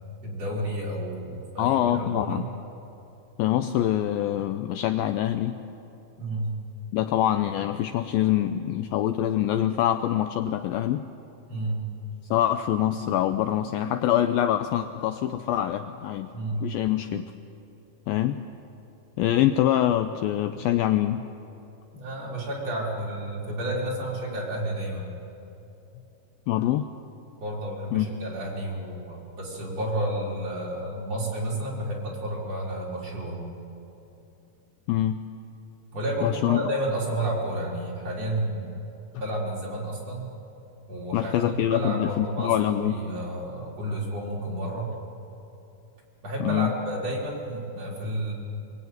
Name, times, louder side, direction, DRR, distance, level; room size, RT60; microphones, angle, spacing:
voice 1, 0.2-2.5 6.2-6.5 11.5-11.8 16.3-16.7 21.9-25.1 27.4-33.5 35.9-38.8 39.2-40.3 40.9-44.9 46.2-48.3, right 1 dB, 35° right, -4 dB, 5.3 m, -31 dB
voice 2, 1.6-2.5 3.4-5.6 6.9-11.0 12.3-16.3 16.6-17.3 18.1-18.4 19.2-21.2 26.5-26.9 27.9-28.1 34.9-35.2 36.2-36.6 41.1-42.9 46.4-46.7, left 12 dB, 90° left, 8 dB, 2.0 m, -25 dB
24.5 x 22.0 x 9.5 m, 2.9 s
omnidirectional pair, 5.0 m